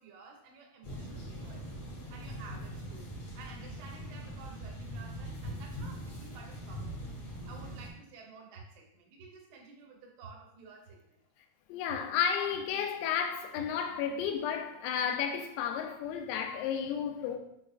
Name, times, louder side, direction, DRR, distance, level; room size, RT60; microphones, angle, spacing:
voice 1, 0.0-7.2 7.5-11.2, right 4 dB, 75° right, 3.0 m, -53 dB
Stereo Street Soundscape + Rain After Storm, 0.8-7.9, equal, 65° left, 1.6 m, -42 dB
sound 1, 8.5-8.6 9.2-9.3 10.2-10.3 10.9-11.0 11.9-12.0 12.5-12.6 13.5-13.6 14.2-14.3, right 9 dB, 50° right, 1.6 m, -50 dB
voice 2, 11.7-17.4, left 8 dB, 85° left, 3.4 m, -32 dB
7.7 x 6.1 x 2.4 m
omnidirectional pair, 5.9 m